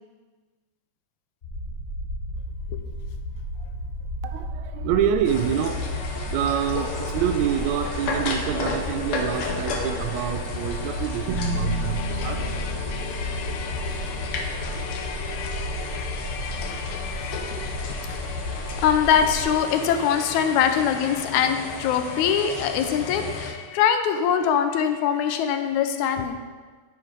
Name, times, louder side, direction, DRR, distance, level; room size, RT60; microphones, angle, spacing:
sound 1, 1.4-19.5, left 1 dB, 45° left, 0.8 m, -33 dB
voice 1, 4.2-12.7, right 9 dB, 80° right, 7 dB, 1.8 m, -27 dB
sound 2, 5.2-23.5, left 4 dB, 70° left, 1.4 m, -33 dB
sound 3, 11.3-15.5, right 1 dB, 55° right, 1.9 m, -32 dB
voice 2, 11.7-18.4 18.7-26.4, left 8 dB, 85° left, 8 dB, 1.9 m, -25 dB
9.6 x 4.6 x 4.7 m, 1.4 s
omnidirectional pair, 3.4 m